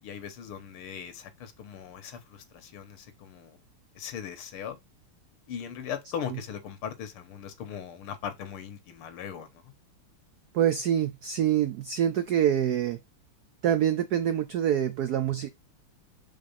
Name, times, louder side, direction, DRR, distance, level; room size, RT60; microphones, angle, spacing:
voice 1, 0.0-3.6 4.0-4.8 5.5-9.7, left 8 dB, 85° left, 2.0 m, -39 dB
voice 2, 10.5-13.0 13.6-15.5, right 10 dB, 80° right, 0.8 m, -25 dB
5.0 x 3.6 x 5.6 m
omnidirectional pair, 2.4 m